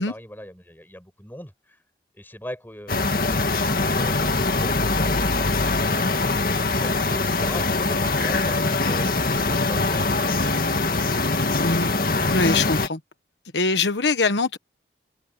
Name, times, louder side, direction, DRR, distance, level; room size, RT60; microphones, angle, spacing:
voice 1, 0.0-1.5 2.2-11.2, equal, 10° left, 7.8 m, -40 dB
sound 1, 2.9-12.9, left 3 dB, 55° left, 2.1 m, -23 dB
voice 2, 11.6-11.9 12.3-13.0 13.5-14.6, left 3 dB, 85° left, 1.2 m, -22 dB
open air
head